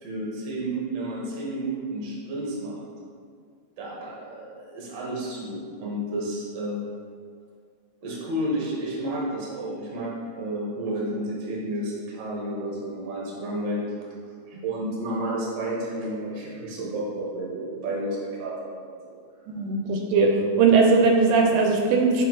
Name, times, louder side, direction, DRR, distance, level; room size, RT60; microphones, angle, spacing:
voice 1, 0.0-2.8 3.8-6.8 8.0-13.9 14.5-19.2, right 1 dB, 55° right, -5 dB, 1.2 m, -31 dB
voice 2, 19.5-22.3, right 4 dB, 80° right, 2 dB, 2.1 m, -19 dB
5.6 x 4.3 x 3.9 m, 2.1 s
omnidirectional pair, 3.8 m